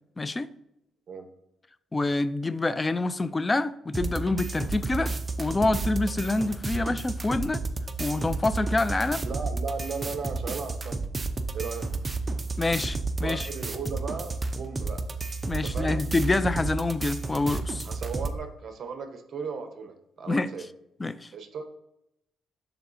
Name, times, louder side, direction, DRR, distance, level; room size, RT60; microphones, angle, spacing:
voice 1, 0.2-0.5 1.9-5.1 5.4-7.6 8.0-9.2 12.6-13.5 15.5-17.9 20.3-20.5 21.0-21.3, left 2 dB, 20° left, 0.4 m, -27 dB
sound 1, 3.9-18.4, right 3 dB, 25° right, 0.7 m, -32 dB
voice 2, 9.2-11.0 11.5-11.9 13.2-15.0 15.6-16.0 17.8-20.6 21.3-21.7, right 5 dB, 55° right, 1.1 m, -36 dB
11.0 x 3.9 x 2.7 m
cardioid pair, 90°, 0 cm